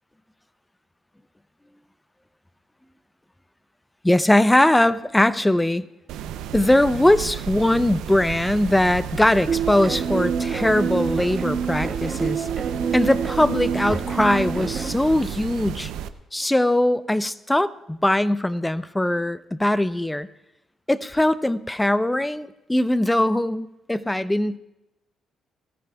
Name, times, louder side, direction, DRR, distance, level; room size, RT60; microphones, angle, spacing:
voice 1, 4.0-5.8 6.5-12.5 12.9-15.9 16.3-20.3 20.9-24.6, left 1 dB, 10° left, 15 dB, 0.5 m, -21 dB
sound 1, 6.1-16.1, right 10 dB, 90° right, 0.5 m, -33 dB
sound 2, 9.5-14.9, right 6 dB, 45° right, 1.6 m, -27 dB
19.5 x 14.0 x 2.3 m, 0.93 s
cardioid pair, 90°, 0 cm